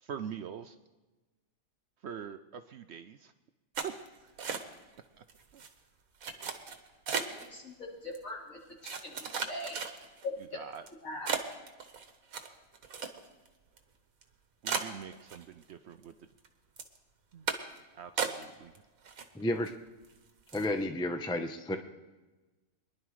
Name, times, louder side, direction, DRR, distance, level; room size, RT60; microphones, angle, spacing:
voice 1, 0.0-0.8 2.0-3.3 3.8-3.9 5.5-5.6 6.5-6.6 10.5-10.9 14.6-16.1 17.3-17.5 17.9-18.8, right 8 dB, 65° right, 9 dB, 0.7 m, -43 dB
sound 1, 3.7-5.0 5.3-5.7 6.2-7.5 8.1-8.2 8.8-10.3 10.8-10.9 11.3-13.5 13.8-13.9 14.2-14.3 14.6-15.7 16.0-16.5 16.8-17.0 17.5-17.8 18.2-18.8 19.0-19.7 20.0-20.2 20.5-20.7, right 6 dB, 85° right, 1.5 m, -36 dB
voice 2, 7.3-9.8 10.2-10.3 11.0-11.4, left 2 dB, 70° left, -6 dB, 4.1 m, -41 dB
voice 3, 19.3-19.7 20.5-21.8, left 1 dB, 5° left, 6 dB, 0.4 m, -31 dB
23.0 x 11.0 x 3.2 m, 1.2 s
omnidirectional pair, 1.4 m